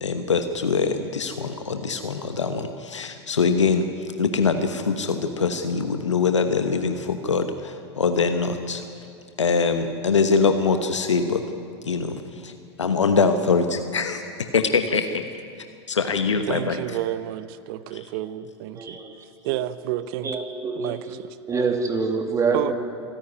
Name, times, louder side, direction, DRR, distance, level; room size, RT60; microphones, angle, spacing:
voice 1, 0.0-3.9 4.2-8.8 9.4-11.4 11.8-12.5 12.8-14.2 14.5-15.2 15.9-16.8, left 5 dB, 85° left, 1.1 m, -23 dB
voice 2, 16.3-19.0 19.4-20.4 20.7-21.4 22.5-22.7, right 13 dB, 55° right, 1.0 m, -30 dB
voice 3, 18.7-19.2 20.2-21.0 21.5-22.7, right 4 dB, 20° right, 2.8 m, -25 dB
26.0 x 10.5 x 9.6 m
hypercardioid pair, 95°, 15 cm